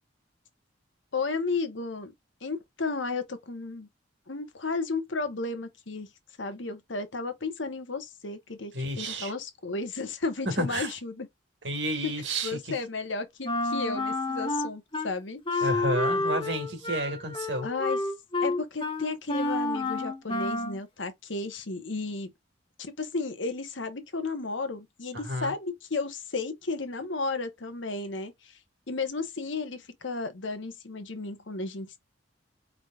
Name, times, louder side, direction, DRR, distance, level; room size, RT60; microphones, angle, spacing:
voice 1, 1.1-2.1 2.4-3.9 4.3-6.1 6.4-11.3 12.0-12.1 12.4-15.7 17.6-18.0 18.4-22.3 22.8-28.6 28.9-32.0, left 3 dB, 80° left, 1.2 m, -33 dB
voice 2, 8.7-9.3 10.6-10.9 11.6-12.6 15.6-17.7 25.2-25.5, right 1 dB, 70° right, 2.1 m, -31 dB
Wind instrument woodwind instrument, 13.4-15.1 15.5-20.8, left 2 dB, 25° left, 1.3 m, -29 dB
5.2 x 3.8 x 2.4 m
head